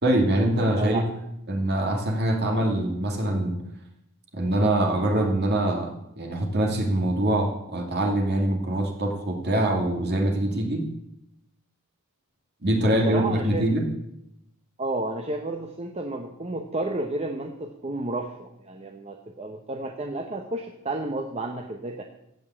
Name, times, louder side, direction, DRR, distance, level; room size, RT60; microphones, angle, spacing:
voice 1, 0.0-1.0 1.5-3.6 4.3-10.8 12.6-13.8, right 1 dB, 50° right, 2 dB, 2.4 m, -24 dB
voice 2, 0.8-1.1 12.9-13.7 14.8-22.0, right 2 dB, 30° right, 3 dB, 0.8 m, -31 dB
15.5 x 5.5 x 8.3 m, 0.82 s
head